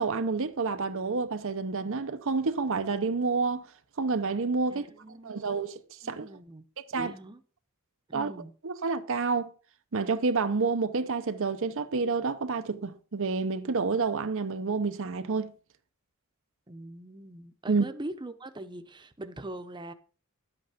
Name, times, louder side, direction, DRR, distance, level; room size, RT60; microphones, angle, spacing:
voice 1, 0.0-3.7 4.0-4.9 5.2-6.3 6.9-7.1 8.1-8.3 8.6-9.5 9.9-15.5 17.7-17.9, right 4 dB, 60° right, 0.7 m, -29 dB
voice 2, 4.7-5.5 6.0-6.6 6.9-7.4 8.1-8.5 16.7-19.9, right 1 dB, 20° right, 0.9 m, -42 dB
11.5 x 8.2 x 5.1 m
head